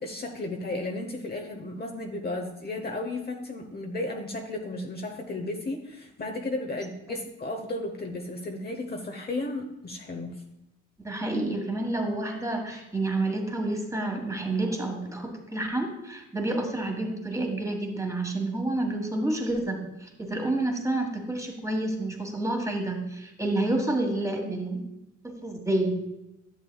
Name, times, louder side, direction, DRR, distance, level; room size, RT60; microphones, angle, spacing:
voice 1, 0.0-10.4, left 2 dB, 30° left, 2 dB, 0.9 m, -34 dB
voice 2, 11.0-24.8 25.4-25.9, right 2 dB, 10° right, 2 dB, 1.6 m, -29 dB
11.0 x 6.9 x 2.3 m, 0.93 s
cardioid pair, 90°, 30 cm